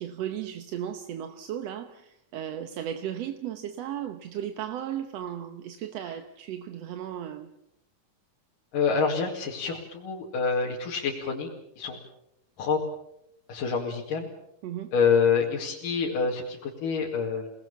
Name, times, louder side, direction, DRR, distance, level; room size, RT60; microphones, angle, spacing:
voice 1, 0.0-7.5 14.6-14.9, right 10 dB, 65° right, 8 dB, 1.8 m, -35 dB
voice 2, 8.7-11.5 11.8-12.0 12.6-12.8 13.5-14.3 14.9-17.5, left 5 dB, 80° left, -2 dB, 3.9 m, -27 dB
30.0 x 19.5 x 7.2 m, 0.80 s
omnidirectional pair, 3.7 m